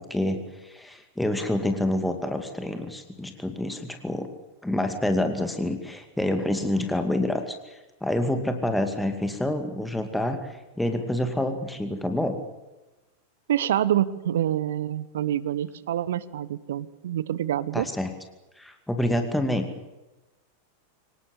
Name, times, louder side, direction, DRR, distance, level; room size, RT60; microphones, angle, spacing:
voice 1, 0.1-4.3 4.6-12.4 17.7-18.1 18.6-19.7, left 1 dB, 5° left, 6 dB, 2.3 m, -27 dB
voice 2, 13.5-17.9, right 11 dB, 60° right, 18 dB, 0.9 m, -26 dB
25.0 x 18.5 x 8.4 m, 1.0 s
figure-of-eight pair, 90°, 0 cm